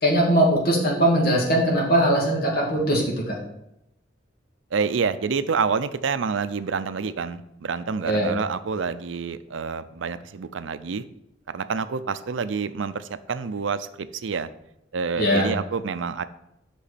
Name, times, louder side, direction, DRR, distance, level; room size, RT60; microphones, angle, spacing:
voice 1, 0.0-3.0 3.3-3.4 8.0-8.3 15.2-15.5, right 1 dB, 55° left, -2 dB, 2.3 m, -20 dB
voice 2, 4.7-11.0 11.5-14.5 14.9-16.2, right 5 dB, 85° right, 13 dB, 0.5 m, -28 dB
8.4 x 6.2 x 4.2 m, 0.85 s
head